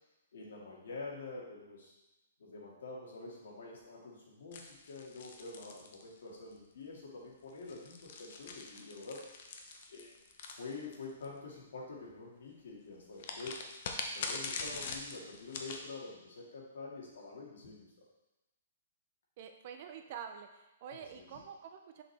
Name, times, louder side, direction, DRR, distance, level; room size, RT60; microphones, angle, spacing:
voice 1, 0.3-1.9 2.4-9.2 9.9-10.2 10.6-13.6 14.1-17.8 20.9-21.3, left 3 dB, 75° left, -4 dB, 2.0 m, -47 dB
sound 1, 4.5-6.5 7.5-11.2 13.2-15.8, left 4 dB, 40° left, 0.6 m, -43 dB
voice 2, 19.4-22.0, right 7 dB, 35° right, 6 dB, 0.4 m, -47 dB
6.1 x 4.9 x 3.3 m, 1.0 s
hypercardioid pair, 175°, 0 cm